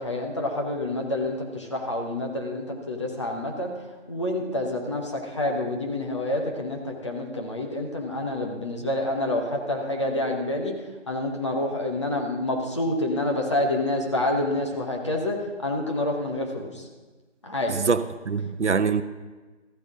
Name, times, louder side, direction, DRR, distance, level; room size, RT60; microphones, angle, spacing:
voice 1, 0.0-3.7 4.1-10.8 11.1-16.9 17.4-17.7, left 1 dB, 25° left, 0 dB, 1.0 m, -28 dB
voice 2, 17.8-19.0, right 5 dB, 70° right, 12 dB, 0.7 m, -24 dB
14.0 x 9.7 x 3.7 m, 1.3 s
figure-of-eight pair, 155°, 36 cm